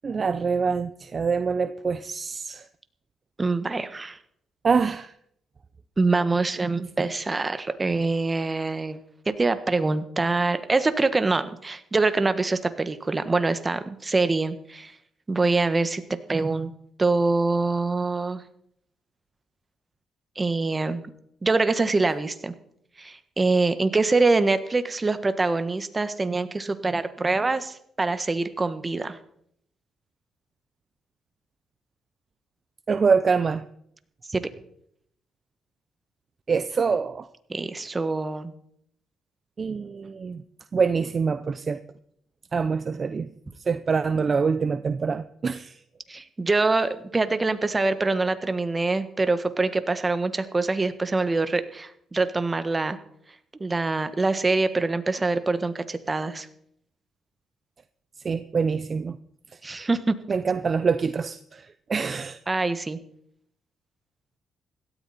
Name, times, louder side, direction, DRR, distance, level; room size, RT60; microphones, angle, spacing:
voice 1, 0.0-2.7 4.6-5.1 32.9-33.6 36.5-37.3 39.6-40.4 40.7-41.8 42.5-43.3 43.7-45.8 58.2-59.2 60.3-62.4, right 5 dB, 40° right, 0.6 m, -25 dB
voice 2, 3.4-4.2 6.0-9.0 9.2-14.9 15.3-16.7 17.0-18.4 20.3-21.0 21.4-22.5 23.0-29.2 34.3-34.5 37.5-38.5 46.1-53.0 53.6-56.5 59.6-60.1 62.5-63.0, right 3 dB, 25° right, 1.4 m, -24 dB
17.0 x 13.5 x 4.3 m
cardioid pair, 90°, 0 cm